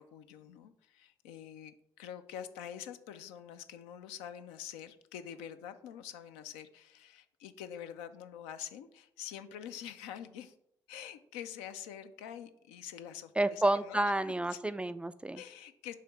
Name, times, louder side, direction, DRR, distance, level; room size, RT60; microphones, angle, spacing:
voice 1, 0.0-10.5 10.9-14.1 14.5-14.6 15.3-15.9, left 9 dB, 65° left, 9 dB, 0.5 m, -46 dB
voice 2, 13.4-15.4, right 1 dB, 10° right, 13 dB, 0.3 m, -30 dB
5.0 x 3.6 x 5.6 m, 0.73 s
figure-of-eight pair, 45°, 11 cm